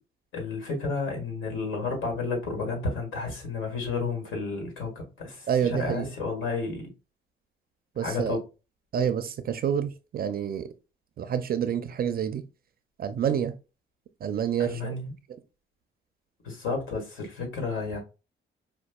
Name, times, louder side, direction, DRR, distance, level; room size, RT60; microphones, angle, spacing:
voice 1, 0.3-6.8 8.0-8.4 14.6-15.1 16.4-18.0, left 4 dB, 80° left, 1.7 m, -31 dB
voice 2, 5.5-6.1 8.0-8.4 8.9-10.7 11.2-12.4 13.0-13.5 14.2-14.9, right 8 dB, 50° right, 0.4 m, -28 dB
5.1 x 2.3 x 2.3 m
cardioid pair, 90°, 20 cm